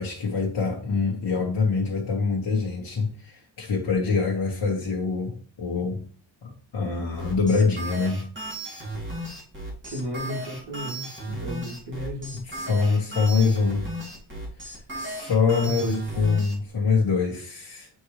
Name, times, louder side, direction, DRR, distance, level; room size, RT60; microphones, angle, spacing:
voice 1, 0.0-6.0 6.4-8.2 12.4-13.9 14.6-17.9, left 4 dB, 60° left, 1.6 m, -25 dB
sound 1, 7.2-16.5, right 1 dB, 25° right, 2.2 m, -35 dB
voice 2, 9.8-12.5 15.6-16.1, equal, 55° right, 3.2 m, -33 dB
8.6 x 4.4 x 3.3 m
wide cardioid pair, 170°, 48 cm